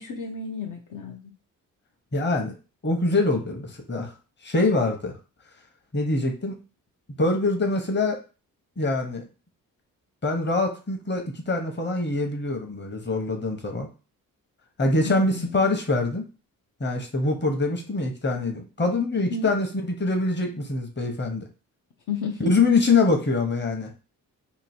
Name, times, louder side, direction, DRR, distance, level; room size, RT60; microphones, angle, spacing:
voice 1, 0.0-1.3 15.0-15.7 19.2-19.5 22.1-22.5, left 5 dB, 60° left, 1 dB, 0.7 m, -33 dB
voice 2, 2.1-2.5 2.8-4.1 4.4-5.1 5.9-6.6 7.2-8.2 8.8-9.3 10.2-13.9 14.8-16.2 16.8-21.5 22.4-23.9, left 3 dB, 30° left, 4 dB, 1.0 m, -24 dB
3.0 x 2.6 x 4.3 m, 0.33 s
cardioid pair, 85°, 35 cm